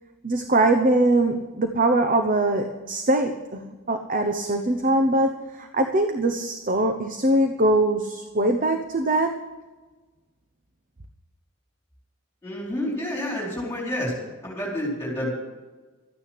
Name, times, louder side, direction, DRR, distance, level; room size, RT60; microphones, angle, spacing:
voice 1, 0.2-9.4, right 1 dB, 35° right, 6 dB, 0.9 m, -22 dB
voice 2, 12.4-14.1 14.4-15.3, left 1 dB, 10° left, -3 dB, 4.4 m, -29 dB
13.5 x 9.8 x 7.7 m, 1.2 s
head